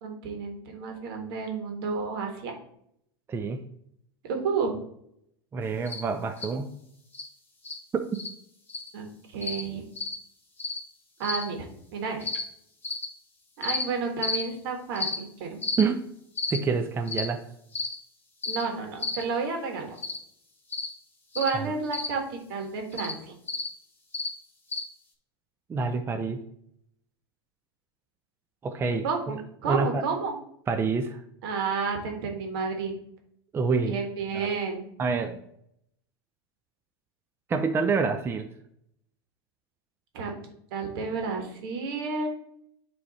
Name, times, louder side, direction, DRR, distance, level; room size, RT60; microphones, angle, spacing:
voice 1, 0.0-2.5 4.2-4.7 8.9-9.8 11.2-11.7 11.9-12.3 13.6-15.6 18.5-20.0 21.3-23.4 29.0-30.3 31.4-32.9 33.8-34.9 40.1-40.3 40.7-42.3, right 5 dB, 65° right, 3 dB, 1.6 m, -31 dB
voice 2, 3.3-3.6 5.5-6.7 7.9-8.2 15.8-16.0 16.5-17.4 21.5-21.6 25.7-26.4 28.6-29.4 29.6-30.0 30.7-31.2 33.5-34.0 34.3-34.5 35.0-35.4 37.5-38.5, right 4 dB, 20° right, 6 dB, 0.4 m, -27 dB
sound 1, 5.9-6.0 6.4-6.5 7.1-7.3 7.6-7.8 8.1-8.3 8.7-8.9 9.4-9.6 10.0-10.1 10.6-10.8 11.2-11.4 12.2-12.4 12.8-13.0 13.6-13.8 14.2-14.4 15.0-15.2 15.6-15.8 16.4-16.6 17.1-17.3 17.7-17.9 18.4-18.6 19.0-19.2 20.0-20.2 20.7-20.9 21.3-21.5 21.9-22.1 22.9-23.1 23.5-23.7 24.1-24.3 24.7-24.8, left 3 dB, 15° left, 1.6 m, -31 dB
8.5 x 3.2 x 4.2 m, 0.72 s
hypercardioid pair, 105°, 13 cm